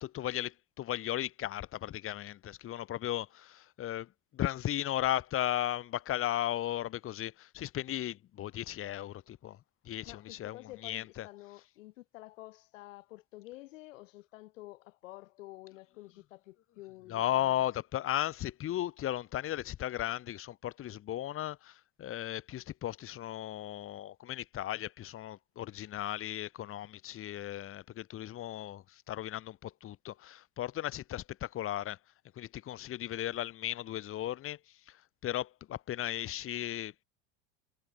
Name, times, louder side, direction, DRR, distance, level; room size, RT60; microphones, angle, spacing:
voice 1, 0.0-9.6 9.8-11.3 17.1-32.0 32.3-34.6 34.9-37.0, left 13 dB, 35° left, 1.6 m, -36 dB
voice 2, 10.1-17.7, left 18 dB, 80° left, 7.2 m, -50 dB
supercardioid pair, 125°, 38 cm